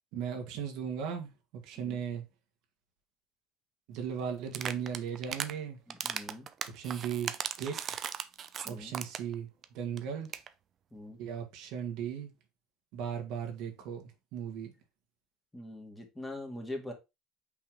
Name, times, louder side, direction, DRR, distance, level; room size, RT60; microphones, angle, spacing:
voice 1, 0.1-2.2 3.9-5.8 6.7-7.8 8.7-9.5 9.7-10.3 11.2-12.3 12.9-14.7, right 7 dB, 70° right, 1.9 m, -37 dB
sound 1, 4.5-5.5 5.9-9.3 9.6-9.7 10.0-10.1 10.2-10.5, right 8 dB, 45° right, 0.6 m, -37 dB
voice 2, 5.9-6.5 8.6-8.9 10.9-11.2 15.5-16.9, left 1 dB, 10° left, 2.0 m, -43 dB
5.7 x 3.5 x 4.7 m
supercardioid pair, 95°, 0 cm